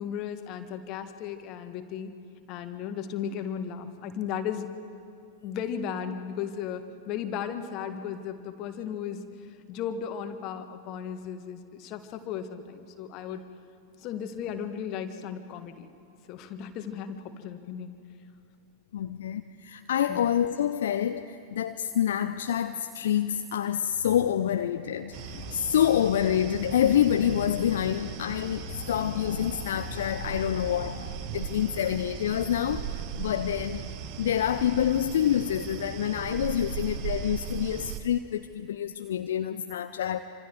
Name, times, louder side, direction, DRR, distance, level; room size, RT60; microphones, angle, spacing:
voice 1, 0.0-2.1 2.5-4.7 5.4-13.4 14.0-15.9 16.3-17.9 20.1-20.3, left 8 dB, 40° left, 1.7 m, -35 dB
voice 2, 18.9-33.9 34.2-40.2, left 10 dB, 60° left, 0.6 m, -27 dB
sound 1, 25.1-38.0, right 8 dB, 45° right, 1.3 m, -38 dB
27.5 x 26.0 x 4.8 m
figure-of-eight pair, 90°, 0 cm